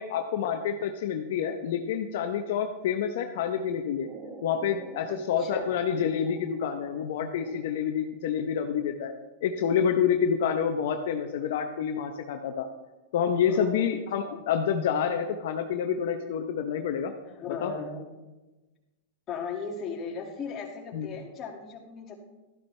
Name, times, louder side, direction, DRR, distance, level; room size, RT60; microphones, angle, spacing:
voice 1, 0.0-4.1 4.4-9.1 9.4-12.7 13.1-17.1 17.6-17.7 20.9-21.1, left 7 dB, 70° left, 5 dB, 0.8 m, -28 dB
sound 1, 4.0-8.1, right 3 dB, 25° right, 1.8 m, -48 dB
voice 2, 5.1-5.7 13.5-13.9 14.2-14.4 17.3-18.0 19.3-22.1, left 5 dB, 30° left, 0 dB, 2.1 m, -37 dB
12.5 x 11.0 x 3.3 m, 1.1 s
hypercardioid pair, 125°, 0 cm